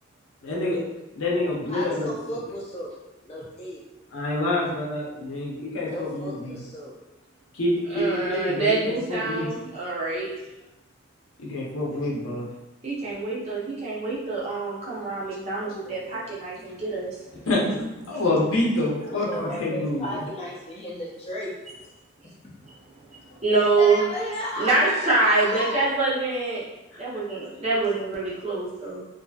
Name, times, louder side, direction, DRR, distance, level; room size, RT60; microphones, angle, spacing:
voice 1, 0.4-0.8 1.1-2.4 4.1-6.6 7.6-9.5 11.4-12.4 15.5-16.2 16.6-16.7 17.5-19.3 19.6-20.1 26.9-27.2 27.5-27.6, left 1 dB, 85° left, -4 dB, 0.8 m, -27 dB
voice 2, 1.7-2.9 3.3-3.8 5.9-6.9 19.1-21.6 22.2-22.3 23.6-25.8, left 1 dB, 30° left, -4 dB, 0.6 m, -33 dB
voice 3, 7.9-10.3 12.8-17.1 23.4-24.0 24.6-26.6 27.0-29.0, right 3 dB, 30° right, -7 dB, 0.7 m, -25 dB
2.7 x 2.6 x 2.3 m, 0.96 s
head